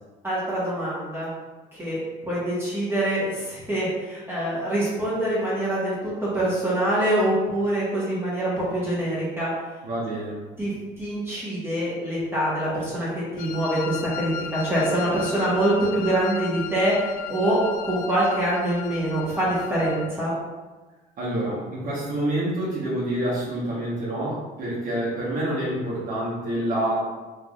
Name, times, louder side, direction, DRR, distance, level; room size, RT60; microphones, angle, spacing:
voice 1, 0.2-1.3 1.8-2.0 2.3-9.5 10.6-10.7 11.0-20.3, right 1 dB, 15° right, -8 dB, 1.3 m, -25 dB
voice 2, 9.8-10.4 21.2-27.1, right 1 dB, 55° right, -7 dB, 1.2 m, -27 dB
Wind instrument woodwind instrument, 13.4-20.1, left 8 dB, 55° left, 0.4 m, -36 dB
3.4 x 3.4 x 2.4 m, 1.2 s
cardioid pair, 110°, 17 cm